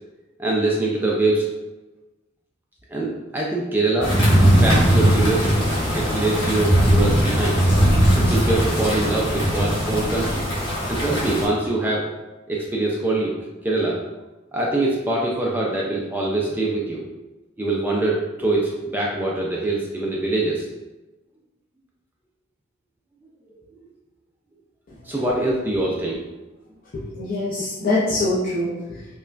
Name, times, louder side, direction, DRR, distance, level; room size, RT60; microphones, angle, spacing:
voice 1, 0.4-1.4 2.9-4.2 4.6-7.6 8.1-10.4 10.9-12.1 12.5-13.3 13.6-14.0 14.5-17.0 17.6-20.7 25.0-26.2, right 2 dB, 10° right, -4 dB, 0.4 m, -23 dB
sound 1, 4.0-11.5, equal, 25° left, 1.5 m, -19 dB
voice 2, 26.9-29.1, left 2 dB, 45° left, -7 dB, 0.6 m, -25 dB
5.2 x 2.2 x 2.5 m, 1.1 s
head